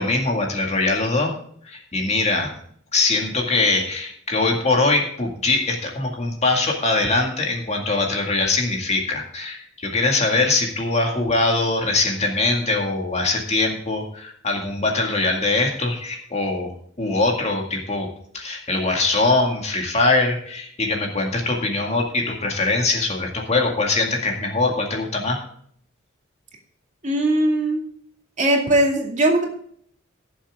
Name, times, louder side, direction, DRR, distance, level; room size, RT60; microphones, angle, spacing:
voice 1, 0.0-1.3 1.7-2.5 2.9-16.7 17.0-18.1 18.3-25.4, left 3 dB, 35° left, 1 dB, 2.1 m, -22 dB
voice 2, 27.0-27.8 28.4-29.4, right 1 dB, 35° right, 1 dB, 2.5 m, -19 dB
17.0 x 7.3 x 3.6 m, 0.62 s
head